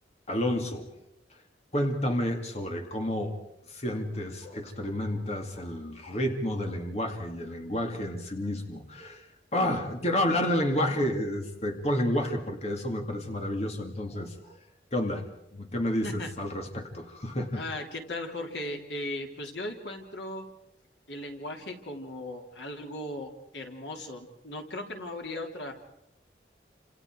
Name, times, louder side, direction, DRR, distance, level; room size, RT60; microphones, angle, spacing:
voice 1, 0.3-0.9 1.7-3.3 3.7-9.3 9.5-14.6 14.9-15.3 15.5-17.6, left 1 dB, 40° left, 4 dB, 2.5 m, -30 dB
voice 2, 17.6-20.4 21.1-25.7, left 1 dB, 85° left, 3 dB, 3.5 m, -37 dB
29.5 x 27.0 x 4.7 m, 0.86 s
head